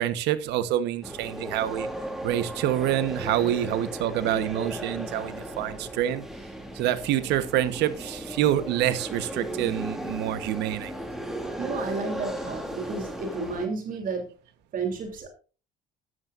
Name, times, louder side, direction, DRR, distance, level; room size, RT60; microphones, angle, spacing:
voice 1, 0.0-1.9 2.2-6.2 6.7-11.1, right 12 dB, 85° right, 14 dB, 1.2 m, -27 dB
sound 1, 1.0-13.7, equal, ahead, 2.7 m, -36 dB
voice 2, 11.6-14.2 14.7-15.3, right 4 dB, 55° right, 5 dB, 3.3 m, -32 dB
13.5 x 13.0 x 2.6 m, 0.35 s
cardioid pair, 110°, 17 cm